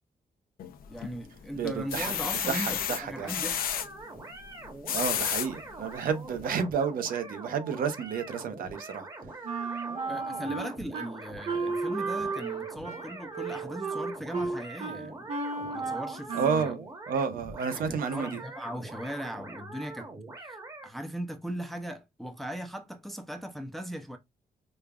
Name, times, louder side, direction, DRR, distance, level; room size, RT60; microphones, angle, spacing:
sound 1, 0.6-1.2 1.7-3.9 4.6-5.5 6.1-6.2 6.5-6.6, left 9 dB, 80° left, 0.6 m, -31 dB
voice 1, 0.9-3.6 10.1-15.3 15.7-16.6 17.7-20.1 20.4-20.6 20.8-24.2, equal, ahead, 0.4 m, -38 dB
voice 2, 1.5-2.1 2.5-3.3 4.9-9.4 16.3-18.4, right 6 dB, 75° right, 0.7 m, -31 dB
sound 2, 3.1-20.9, right 2 dB, 25° right, 0.9 m, -44 dB
Wind instrument woodwind instrument, 9.4-11.1 11.4-16.8, right 4 dB, 45° right, 1.1 m, -34 dB
5.1 x 2.3 x 2.3 m
wide cardioid pair, 175°, 15 cm